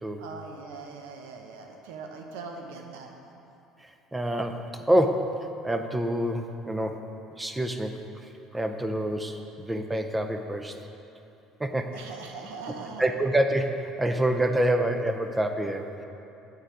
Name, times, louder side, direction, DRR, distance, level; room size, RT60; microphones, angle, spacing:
voice 1, 0.2-3.2 11.9-13.0, right 4 dB, 85° right, 2 dB, 0.8 m, -41 dB
voice 2, 4.1-7.1 7.4-8.0 8.5-10.8 11.6-12.0 13.0-16.0, right 1 dB, 10° right, 6 dB, 0.6 m, -27 dB
9.0 x 3.9 x 4.8 m, 3.0 s
supercardioid pair, 80°, 0 cm